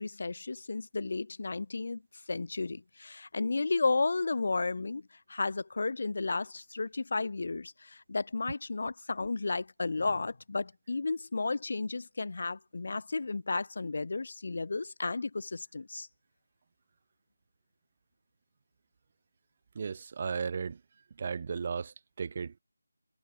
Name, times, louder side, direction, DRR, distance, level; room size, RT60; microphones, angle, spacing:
voice 1, 0.0-2.0 2.3-5.0 5.3-16.1, left 3 dB, 50° left, 1.9 m, -33 dB
voice 2, 19.7-20.8 21.1-22.6, right 5 dB, 35° right, 2.7 m, -35 dB
figure-of-eight pair, 160°, 0 cm